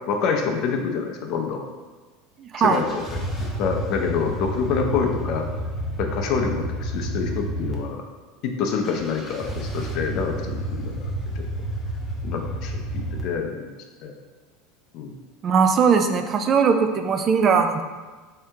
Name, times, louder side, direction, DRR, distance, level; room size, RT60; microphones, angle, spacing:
voice 1, 0.1-1.6 2.6-5.5 6.0-8.0 8.4-11.1 11.4-11.5 12.2-13.7 14.0-14.1 14.9-15.1, left 5 dB, 55° left, 3 dB, 0.5 m, -27 dB
voice 2, 2.4-2.8 15.4-17.8, right 6 dB, 35° right, 7 dB, 0.3 m, -19 dB
sound 1, 2.7-7.7 8.8-13.2, right 1 dB, 15° left, 0.7 m, -30 dB
3.6 x 2.8 x 3.4 m, 1.3 s
supercardioid pair, 115°, 0 cm